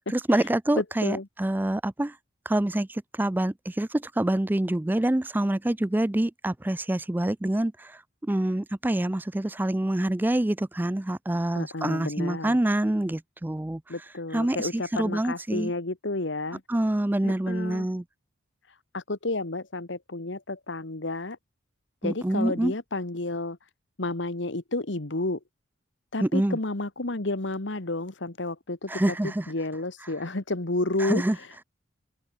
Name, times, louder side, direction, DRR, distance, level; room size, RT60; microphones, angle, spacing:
voice 1, 0.1-2.2 2.5-13.8 14.3-15.7 16.7-18.0 22.0-22.7 26.2-26.6 28.9-29.5 31.0-31.4, right 1 dB, 10° right, 0.3 m, -26 dB
voice 2, 0.8-1.3 11.5-12.6 13.9-16.6 17.2-17.9 18.7-21.4 22.0-23.6 24.0-25.4 26.1-31.6, left 2 dB, 60° left, 1.5 m, -31 dB
head